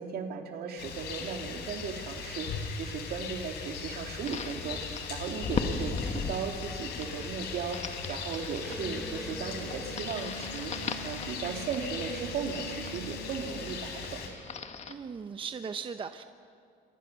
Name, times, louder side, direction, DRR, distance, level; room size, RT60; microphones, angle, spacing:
voice 1, 0.0-14.3, right 6 dB, 65° right, 3 dB, 2.9 m, -36 dB
Rain, 0.8-14.3, left 6 dB, 85° left, 3.9 m, -39 dB
sound 1, 4.3-14.9, left 5 dB, 40° left, 1.7 m, -39 dB
Electric guitar, 8.6-14.1, right 2 dB, ahead, 4.2 m, -45 dB
voice 2, 14.9-16.2, right 6 dB, 30° right, 9 dB, 0.8 m, -38 dB
28.0 x 24.0 x 6.8 m, 2.5 s
cardioid pair, 110°, 17 cm